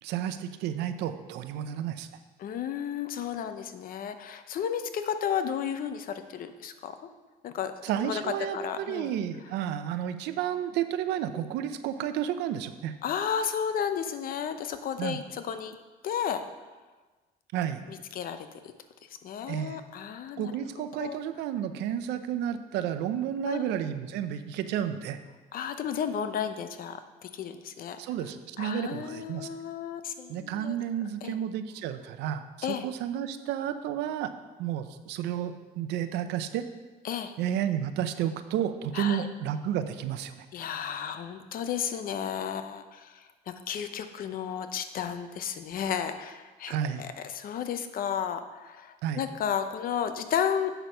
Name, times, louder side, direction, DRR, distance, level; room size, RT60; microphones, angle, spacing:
voice 1, 0.0-2.1 7.8-12.9 15.0-15.2 17.5-17.8 19.5-19.8 20.4-25.2 28.0-29.5 30.3-34.3 34.6-36.7 37.4-40.5 46.7-47.0 49.0-49.2, right 10 dB, 85° right, 10 dB, 0.6 m, -31 dB
voice 2, 2.4-7.0 7.4-7.7 8.0-9.1 13.0-15.8 16.0-16.4 17.9-18.5 19.2-20.5 21.0-21.2 23.5-23.7 25.5-28.0 28.6-30.7 31.2-31.3 32.6-32.8 37.0-37.3 38.9-39.2 40.5-50.7, left 8 dB, 55° left, 9 dB, 0.7 m, -33 dB
8.0 x 6.2 x 5.5 m, 1.3 s
cardioid pair, 110°, 17 cm